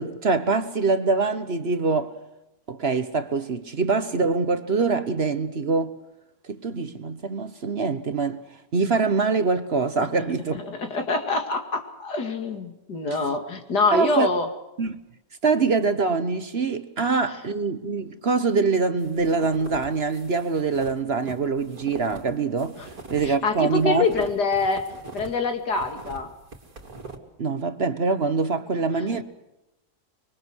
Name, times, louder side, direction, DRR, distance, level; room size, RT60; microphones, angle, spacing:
voice 1, 0.0-2.1 2.7-5.9 6.5-8.4 8.7-10.6 13.9-14.3 14.8-15.0 15.4-22.8 23.1-24.1 27.4-29.2, right 4 dB, 45° right, 1.2 m, -24 dB
voice 2, 10.5-14.5 22.8-22.9 23.2-24.9 25.1-26.3 29.1-29.2, left 3 dB, 85° left, 3.0 m, -25 dB
sound 1, 19.0-25.4 25.7-27.2, right 3 dB, 65° right, 3.0 m, -42 dB
25.5 x 23.0 x 6.3 m
omnidirectional pair, 1.7 m